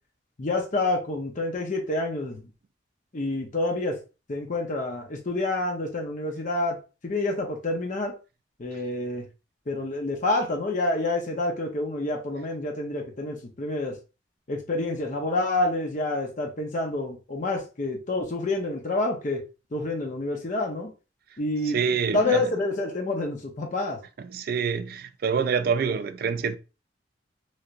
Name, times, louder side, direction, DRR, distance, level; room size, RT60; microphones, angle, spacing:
voice 1, 0.4-2.4 3.1-4.0 4.3-6.8 7.0-8.1 8.6-9.3 9.7-14.0 14.5-19.4 19.7-20.9 21.4-21.8 22.1-24.0, left 2 dB, 45° left, 0.7 m, -28 dB
voice 2, 21.6-22.5 24.2-26.6, right 6 dB, 55° right, 0.4 m, -26 dB
3.2 x 2.9 x 2.4 m
head